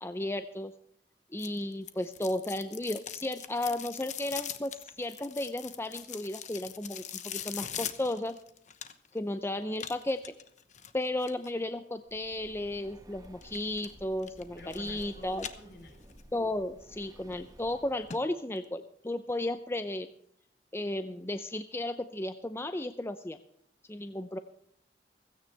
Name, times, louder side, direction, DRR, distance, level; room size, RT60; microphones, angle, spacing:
voice 1, 0.0-0.7 1.3-8.4 9.1-10.2 10.9-15.5 16.3-20.1 20.7-23.4 23.9-24.4, left 1 dB, 15° left, 9 dB, 0.6 m, -34 dB
sound 1, 1.4-9.2 9.8-11.5 13.4-13.9 14.2-15.1 15.3-16.2 16.6-16.7 17.3-17.4 17.7-17.8 18.1-18.2 18.6-18.7, left 9 dB, 45° left, 1.0 m, -42 dB
Breathing, 12.0-18.2, equal, 20° right, 2.2 m, -54 dB
voice 2, 14.6-16.2, left 1 dB, 60° left, 3 dB, 4.2 m, -51 dB
16.5 x 16.5 x 3.4 m, 0.68 s
head